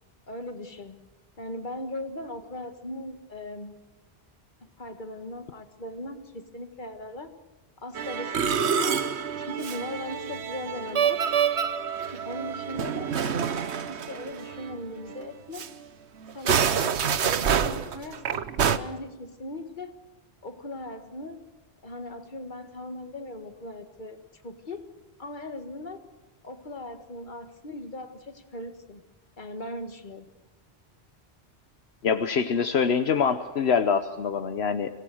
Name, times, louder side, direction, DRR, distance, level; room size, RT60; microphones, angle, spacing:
voice 1, 0.3-1.0 1.4-3.8 4.6-7.3 7.8-8.4 8.6-9.0 9.4-11.2 12.1-13.1 13.9-15.7 16.3-18.4 18.7-19.9 20.4-21.4 21.8-24.2 24.4-24.9 25.2-26.0 26.4-29.0 29.4-30.3, left 1 dB, 45° left, 7 dB, 1.9 m, -38 dB
Musical instrument, 8.0-14.8 15.1-15.3 15.5-15.7 16.3-18.8, right 7 dB, 85° right, 1.2 m, -27 dB
voice 2, 32.0-34.9, left 6 dB, 75° left, 8 dB, 1.2 m, -24 dB
25.0 x 17.0 x 7.8 m, 1.1 s
omnidirectional pair, 1.1 m